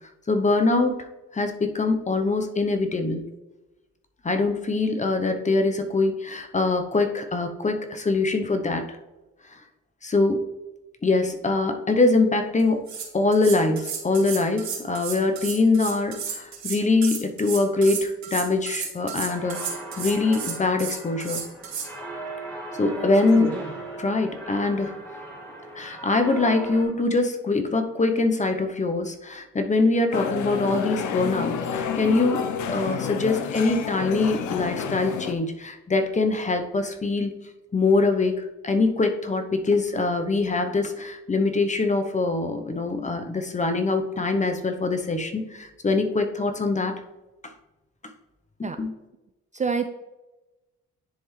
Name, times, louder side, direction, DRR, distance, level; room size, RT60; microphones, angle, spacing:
voice 1, 0.3-3.2 4.2-9.0 9.5-9.6 10.0-10.4 11.0-12.9 13.1-21.4 22.8-23.7 24.0-25.0 25.7-37.3 37.7-47.0 48.6-48.9, left 3 dB, 25° left, 7 dB, 0.8 m, -23 dB
sound 1, 12.6-12.7 12.9-21.9, right 6 dB, 65° right, 2.0 m, -33 dB
sound 2, 19.3-26.8, right 2 dB, 5° left, 2.3 m, -38 dB
voice 2, 22.7-23.1 23.3-23.6 48.6-48.8 49.5-49.9, right 5 dB, 25° right, 8 dB, 0.4 m, -29 dB
sound 3, 30.1-35.3, left 7 dB, 75° left, 0.7 m, -29 dB
10.5 x 3.5 x 3.2 m, 1.0 s
cardioid pair, 90°, 30 cm